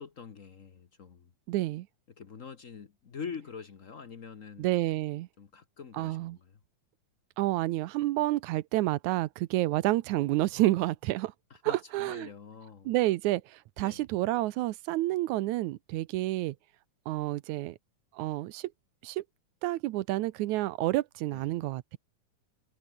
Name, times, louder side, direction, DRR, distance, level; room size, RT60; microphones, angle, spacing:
voice 1, 0.0-1.3 2.2-4.7 5.4-6.6 11.5-12.9 13.8-14.1 21.3-21.6, left 6 dB, 60° left, 0.8 m, -45 dB
voice 2, 1.5-1.9 4.6-5.3 5.9-6.4 7.4-11.3 11.6-12.3 12.9-16.6 17.1-17.8 18.2-18.7 19.0-19.2 19.6-22.0, right 17 dB, 90° right, 2.1 m, -29 dB
omnidirectional pair, 3.4 m